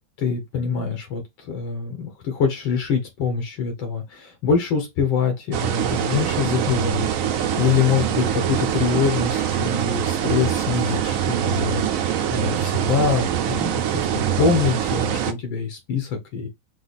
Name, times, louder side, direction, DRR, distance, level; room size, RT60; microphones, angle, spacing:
voice 1, 0.2-16.5, left 6 dB, 80° left, 1.9 m, -24 dB
sound 1, 5.5-15.3, right 9 dB, 80° right, 0.7 m, -24 dB
4.8 x 2.2 x 4.0 m
omnidirectional pair, 2.1 m